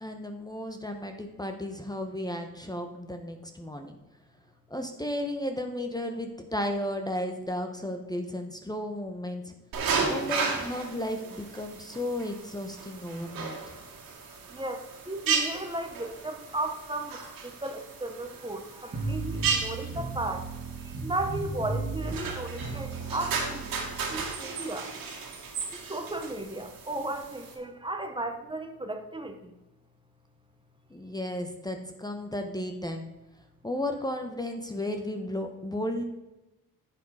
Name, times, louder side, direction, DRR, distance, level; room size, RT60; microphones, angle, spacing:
voice 1, 0.0-3.9 4.7-9.5 10.1-13.8 30.9-33.1 33.6-36.0, left 1 dB, 10° left, 4 dB, 1.1 m, -34 dB
sound 1, 9.7-27.5, right 5 dB, 85° right, 2.2 m, -35 dB
voice 2, 14.5-17.2 17.4-20.5 21.0-23.7 24.1-24.9 25.7-29.4, right 2 dB, 15° right, 6 dB, 1.1 m, -35 dB
sound 2, 18.9-24.2, right 3 dB, 35° right, 2.1 m, -35 dB
10.5 x 7.4 x 4.9 m, 1.0 s
cardioid pair, 85°, 34 cm